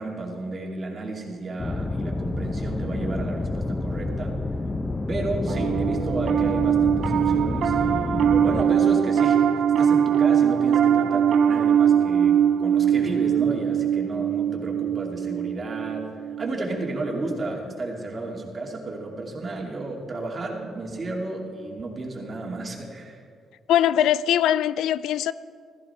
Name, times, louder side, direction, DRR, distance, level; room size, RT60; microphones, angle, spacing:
voice 1, 0.0-4.3 5.1-9.4 9.8-16.0 16.4-23.2, right 2 dB, 35° right, 2.6 m, -32 dB
sound 1, 1.6-8.6, left 2 dB, 25° left, 0.6 m, -29 dB
Piano, 5.5-17.0, right 8 dB, 65° right, 0.5 m, -22 dB
voice 2, 23.7-25.3, left 11 dB, 85° left, 0.3 m, -21 dB
15.0 x 14.0 x 4.4 m
cardioid pair, 90°, 0 cm